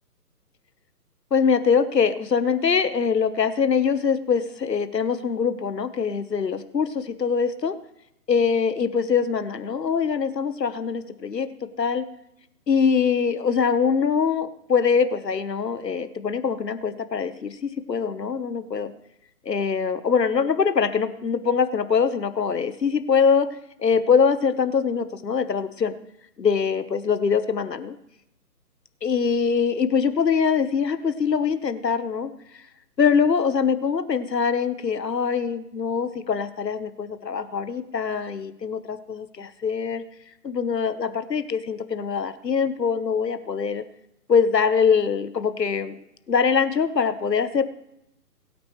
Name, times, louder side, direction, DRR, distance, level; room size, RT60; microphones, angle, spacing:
voice 1, 1.3-7.7 8.3-11.5 11.8-12.0 12.7-18.9 19.4-23.5 23.8-25.9 26.4-28.0 29.0-32.3 33.0-40.0 40.4-43.8 44.3-45.9 46.3-47.6, left 6 dB, 85° left, 11 dB, 1.2 m, -23 dB
21.5 x 9.4 x 3.2 m, 0.82 s
figure-of-eight pair, 145°, 48 cm